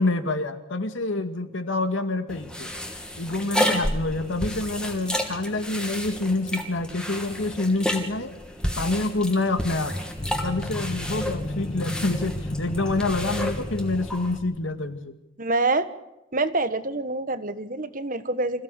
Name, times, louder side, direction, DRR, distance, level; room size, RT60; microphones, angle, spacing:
voice 1, 0.0-2.7 3.2-8.3 8.8-10.0 10.4-15.1, left 2 dB, 75° left, 8 dB, 2.1 m, -27 dB
sound 1, 2.3-14.4, equal, 5° left, 2.6 m, -31 dB
sound 2, 10.2-14.7, left 1 dB, 30° left, 1.2 m, -33 dB
voice 2, 15.4-15.9 16.3-18.6, right 2 dB, 40° right, 11 dB, 1.5 m, -26 dB
27.0 x 16.5 x 8.2 m, 0.92 s
head